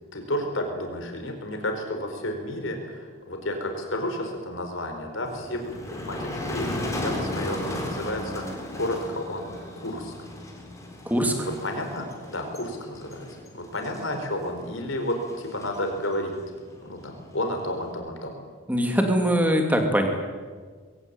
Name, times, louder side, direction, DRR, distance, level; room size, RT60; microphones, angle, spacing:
voice 1, 0.1-9.5 9.8-10.1 11.4-13.3 13.5-16.3 16.8-18.3, left 1 dB, 60° left, 4 dB, 4.7 m, -31 dB
Motor vehicle (road), 5.2-17.9, left 1 dB, 15° left, 3.8 m, -36 dB
voice 2, 11.0-11.5 18.7-20.1, equal, 5° right, 3 dB, 2.8 m, -22 dB
21.5 x 17.5 x 9.1 m, 1.5 s
head